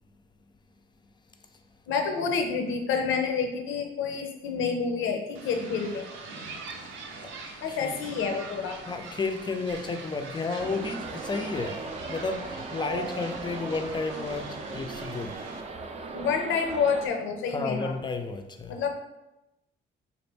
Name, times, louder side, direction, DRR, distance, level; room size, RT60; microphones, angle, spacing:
voice 1, 1.9-6.1 7.6-8.8 16.1-17.9 18.7-18.9, left 5 dB, 80° left, 4 dB, 0.6 m, -28 dB
sound 1, 5.3-15.6, right 3 dB, 80° right, 0.6 m, -43 dB
voice 2, 7.7-8.0 8.9-11.8 12.1-15.4 17.5-18.8, left 4 dB, 20° left, 7 dB, 0.4 m, -32 dB
sound 2, 10.6-17.1, right 3 dB, 35° right, 0.4 m, -38 dB
4.2 x 2.4 x 3.3 m, 0.96 s
cardioid pair, 90°, 20 cm